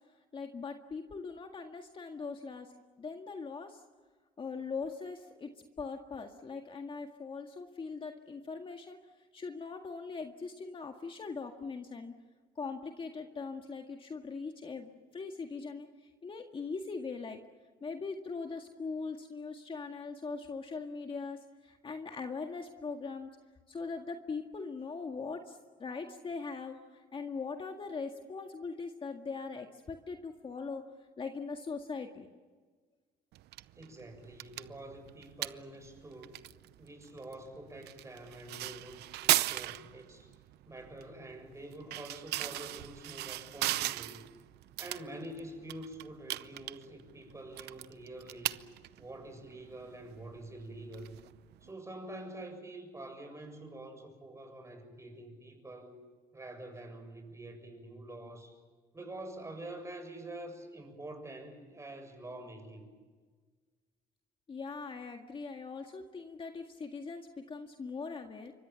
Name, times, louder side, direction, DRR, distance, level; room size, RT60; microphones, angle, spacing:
voice 1, 0.3-2.7 3.0-3.8 4.4-5.5 5.8-9.0 9.3-12.1 12.6-15.9 16.2-17.4 17.8-23.3 23.7-30.8 31.2-32.3 64.5-68.5, left 4 dB, 30° left, 4 dB, 1.9 m, -41 dB
sound 1, 33.3-51.7, right 16 dB, 75° right, 0.7 m, -38 dB
voice 2, 33.7-36.4 36.8-40.3 40.7-44.2 44.8-48.5 49.0-51.2 51.6-56.0 56.3-58.6 58.9-62.9, right 1 dB, 15° right, 5 dB, 7.3 m, -46 dB
28.5 x 24.5 x 7.1 m, 1.4 s
cardioid pair, 110°, 17 cm